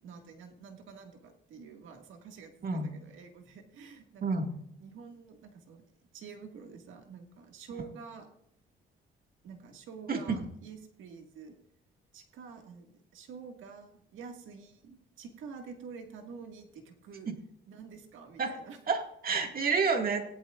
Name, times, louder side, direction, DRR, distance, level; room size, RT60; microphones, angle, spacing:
voice 1, 0.0-4.4 4.8-5.8 6.1-8.3 9.4-11.6 12.1-17.3 17.7-18.8, right 5 dB, 80° right, 4 dB, 1.9 m, -48 dB
voice 2, 4.2-4.5 10.1-10.4 17.3-17.4 18.4-18.5 18.9-20.2, right 4 dB, 50° right, 4 dB, 1.9 m, -29 dB
17.5 x 11.5 x 2.5 m, 0.74 s
cardioid pair, 90°, 20 cm